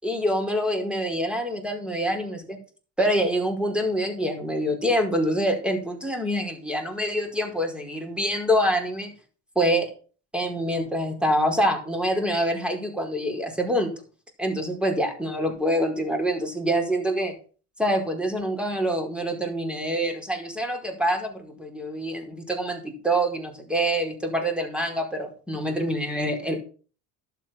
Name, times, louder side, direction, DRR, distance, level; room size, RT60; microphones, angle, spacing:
voice 1, 0.0-2.6 3.0-9.1 9.5-9.9 10.3-13.9 14.4-17.3 17.8-26.6, equal, ahead, 3 dB, 4.9 m, -26 dB
11.5 x 8.2 x 6.1 m, 0.39 s
supercardioid pair, 80°, 45 cm